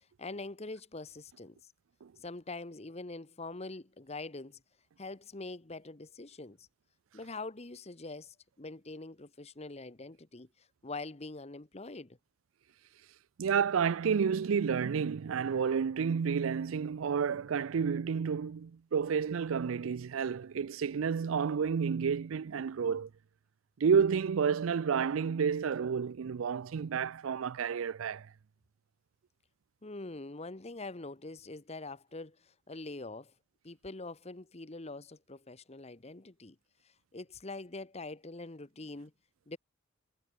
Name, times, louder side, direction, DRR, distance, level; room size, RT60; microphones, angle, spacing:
voice 1, 0.2-1.6 2.2-4.6 5.0-6.7 7.1-12.2 29.8-33.3 33.6-36.5 37.1-39.1 39.5-39.6, left 3 dB, 30° left, 1.1 m, -44 dB
voice 2, 13.4-23.1 23.8-28.3, right 6 dB, 80° right, 0.4 m, -30 dB
head